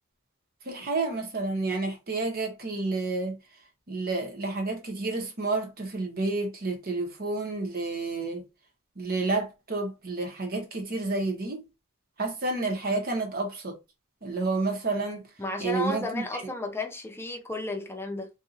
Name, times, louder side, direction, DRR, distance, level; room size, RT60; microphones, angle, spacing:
voice 1, 0.6-3.4 3.9-8.5 9.0-11.6 12.2-13.7 14.2-15.2 15.6-16.5, right 3 dB, 45° right, 1.2 m, -30 dB
voice 2, 15.4-18.3, left 2 dB, 10° left, 0.7 m, -33 dB
2.8 x 2.7 x 3.8 m
head